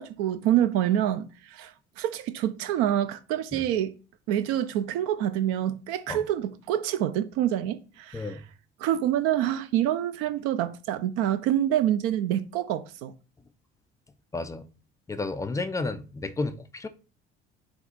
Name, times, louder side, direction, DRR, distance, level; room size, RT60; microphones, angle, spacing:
voice 1, 0.0-4.0 4.3-8.4 8.8-13.1, right 11 dB, 50° right, 0.5 m, -27 dB
voice 2, 14.3-14.6 15.1-16.9, left 3 dB, 10° left, 0.4 m, -32 dB
6.8 x 2.4 x 2.7 m
figure-of-eight pair, 55°, 30 cm